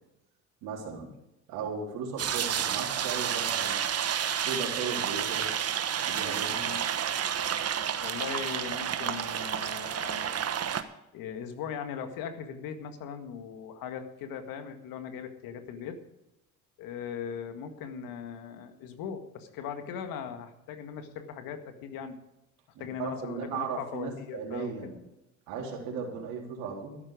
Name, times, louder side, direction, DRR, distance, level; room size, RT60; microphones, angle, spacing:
voice 1, 0.6-1.1 1.5-3.8 4.5-5.5 6.0-6.9 22.8-24.9 25.5-27.0, right 5 dB, 75° right, -1 dB, 4.0 m, -36 dB
sound 1, 2.2-10.8, right 9 dB, 40° right, 1.2 m, -30 dB
voice 2, 6.5-6.9 8.0-10.4 11.1-16.0 16.8-22.2 22.8-24.9, left 7 dB, 65° left, 7 dB, 1.9 m, -39 dB
13.0 x 11.5 x 5.1 m, 0.90 s
hypercardioid pair, 70°, 36 cm